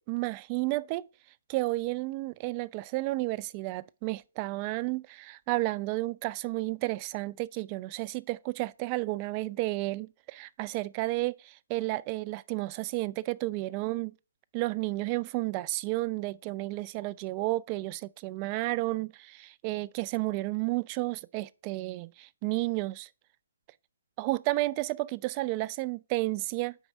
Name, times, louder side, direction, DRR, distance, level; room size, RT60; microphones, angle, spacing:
voice 1, 0.1-1.1 1.5-14.1 14.5-23.1 24.2-26.8, right 20 dB, 30° right, 0.3 m, -32 dB
5.3 x 4.6 x 6.1 m
hypercardioid pair, 140°, 0 cm